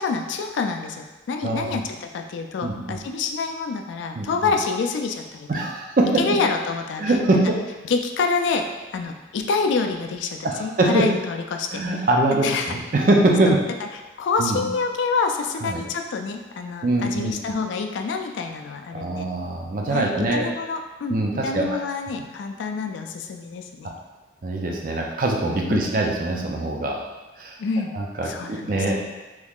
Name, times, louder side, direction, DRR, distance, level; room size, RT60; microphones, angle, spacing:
voice 1, 0.0-5.7 6.2-7.2 7.8-8.7 8.9-11.8 12.4-12.8 13.5-13.6 14.2-19.3 19.9-23.9 25.7-25.9 27.6-27.9 28.2-28.8, left 4 dB, 80° left, 4 dB, 0.3 m, -27 dB
voice 2, 1.4-1.8 2.6-3.0 4.2-4.3 5.5-6.2 7.0-7.6 10.4-11.1 11.7-13.6 14.4-14.6 15.6-15.8 16.8-17.3 18.9-20.5 21.1-21.7 24.4-27.0 27.4-27.5 27.9-29.2, right 2 dB, 45° right, 0 dB, 0.4 m, -23 dB
3.5 x 3.1 x 2.4 m, 1.2 s
head